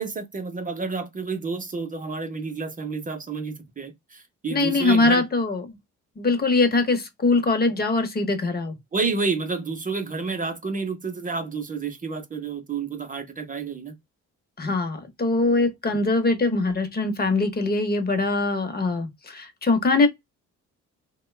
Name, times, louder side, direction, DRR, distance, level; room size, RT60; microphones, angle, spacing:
voice 1, 0.0-5.2 8.9-13.9 15.8-16.0, right 4 dB, 25° right, 0.7 m, -30 dB
voice 2, 4.5-5.6 6.2-8.8 14.6-20.1, left 3 dB, 30° left, 0.8 m, -22 dB
2.9 x 2.2 x 3.1 m
cardioid pair, 90°, 30 cm